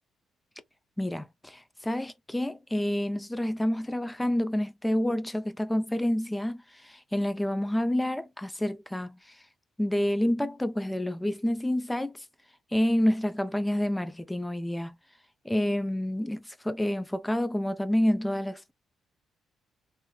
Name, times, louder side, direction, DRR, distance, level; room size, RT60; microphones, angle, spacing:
voice 1, 1.0-9.2 9.8-12.2 12.7-15.0 15.4-18.7, left 1 dB, 10° left, 0.4 m, -28 dB
3.0 x 2.1 x 3.7 m
cardioid pair, 90°, 0 cm